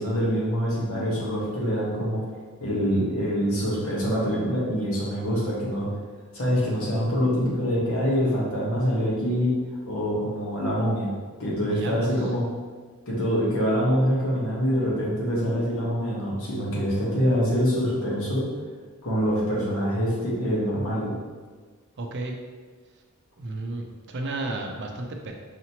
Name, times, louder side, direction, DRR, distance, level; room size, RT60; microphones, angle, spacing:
voice 1, 0.0-2.2 2.6-5.9 6.3-9.5 9.9-11.1 11.4-12.5 13.1-18.5 19.0-21.1, equal, 70° left, -5 dB, 1.2 m, -25 dB
voice 2, 11.7-12.3 22.0-22.4 23.4-25.3, right 2 dB, 55° right, 3 dB, 0.5 m, -33 dB
5.0 x 2.9 x 2.8 m, 1.5 s
head